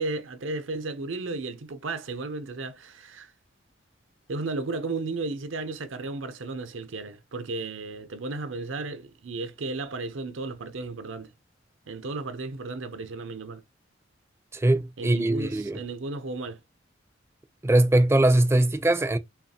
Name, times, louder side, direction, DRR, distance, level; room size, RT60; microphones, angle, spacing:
voice 1, 0.0-3.3 4.3-11.3 11.9-13.6 15.0-16.6, right 3 dB, 90° right, 0.7 m, -34 dB
voice 2, 14.5-15.8 17.6-19.2, right 1 dB, 15° right, 0.4 m, -21 dB
5.6 x 2.4 x 2.8 m
head